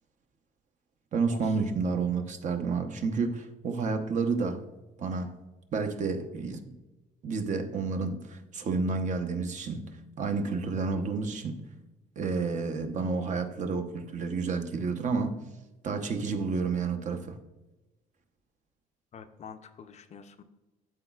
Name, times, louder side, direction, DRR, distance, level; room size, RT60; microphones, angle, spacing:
voice 1, 1.1-4.6 5.0-5.4 5.7-6.7 7.2-9.9 10.2-11.6 12.2-15.4 15.8-17.4, right 4 dB, 45° right, 7 dB, 0.8 m, -30 dB
voice 2, 19.1-20.4, left 6 dB, 40° left, 9 dB, 0.5 m, -47 dB
12.0 x 4.1 x 2.4 m, 1.1 s
cardioid pair, 110°, 17 cm